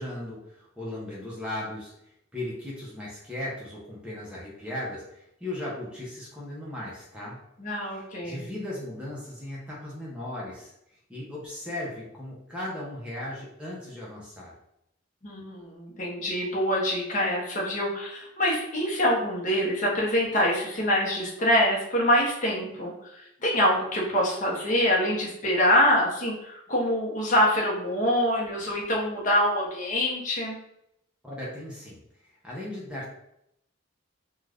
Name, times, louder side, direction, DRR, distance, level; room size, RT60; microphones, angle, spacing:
voice 1, 0.0-1.9 2.3-7.4 7.9-10.7 11.1-14.5 31.2-33.2, left 1 dB, 5° right, -6 dB, 0.6 m, -37 dB
voice 2, 7.6-8.5 15.2-30.6, equal, 40° left, -3 dB, 0.8 m, -25 dB
2.5 x 2.3 x 3.3 m, 0.79 s
head